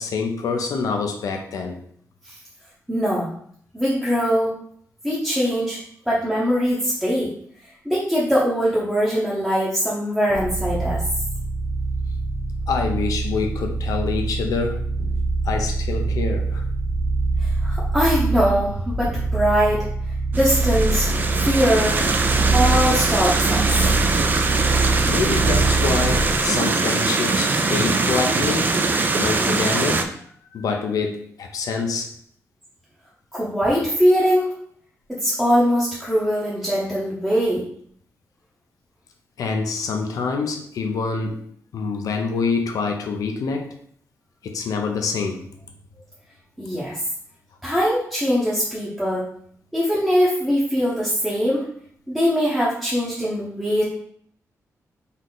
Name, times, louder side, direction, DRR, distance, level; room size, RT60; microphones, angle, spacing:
voice 1, 0.0-1.8 12.7-14.8 15.4-16.6 25.0-28.7 29.2-30.1 30.5-32.1 39.4-41.4 41.7-43.7 44.4-45.4, left 4 dB, 85° left, 3 dB, 0.6 m, -26 dB
voice 2, 2.9-3.3 3.7-4.6 5.0-5.8 6.1-7.3 7.8-11.0 17.4-19.9 20.3-21.1 21.4-22.0 22.5-23.7 33.3-34.5 35.1-37.7 46.6-47.0 47.6-49.2 49.7-51.7 52.1-53.8, equal, 5° right, -7 dB, 0.8 m, -21 dB
sound 1, 10.3-26.4, right 3 dB, 60° right, 1.0 m, -24 dB
sound 2, 20.3-30.0, right 3 dB, 30° right, 0.4 m, -22 dB
4.1 x 3.2 x 3.9 m, 0.62 s
wide cardioid pair, 175°, 6 cm